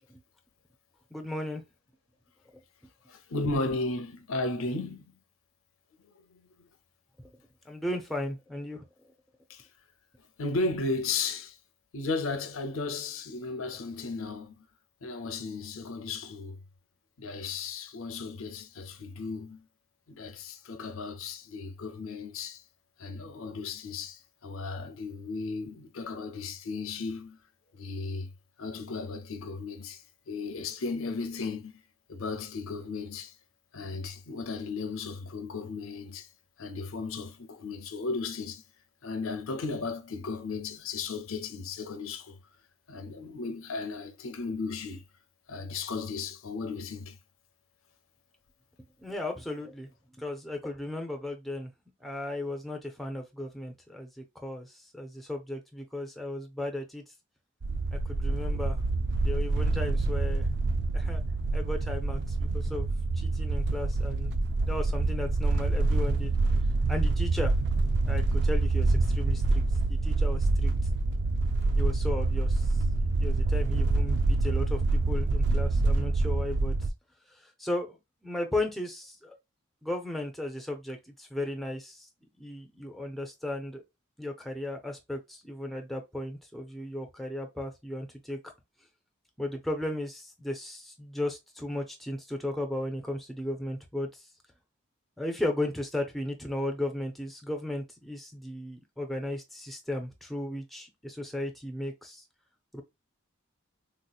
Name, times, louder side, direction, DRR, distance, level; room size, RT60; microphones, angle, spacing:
voice 1, 1.1-1.6 7.2-7.3 7.7-8.8 49.0-49.9 50.2-51.7 52.0-57.0 57.9-58.8 59.2-60.5 60.9-61.2 61.5-62.9 63.2-66.3 66.9-67.5 68.1-69.6 69.9-70.7 71.8-72.8 73.2-76.7 77.4-78.0 78.2-79.4 79.8-82.1 82.4-83.8 84.2-88.5 89.4-94.2 95.2-102.2 102.7-102.8, left 1 dB, ahead, 0.5 m, -35 dB
voice 2, 3.1-5.1 6.3-6.7 9.5-9.7 10.4-11.6 11.9-14.6 15.0-16.6 17.2-19.6 20.1-22.6 23.0-27.4 27.7-28.3 28.6-31.7 32.1-33.3 33.7-36.3 36.6-38.6 39.0-42.4 42.9-45.0 45.5-47.2, left 3 dB, 75° left, 0.6 m, -35 dB
sound 1, 57.6-76.9, right 2 dB, 55° right, 0.4 m, -26 dB
3.6 x 2.8 x 2.3 m
head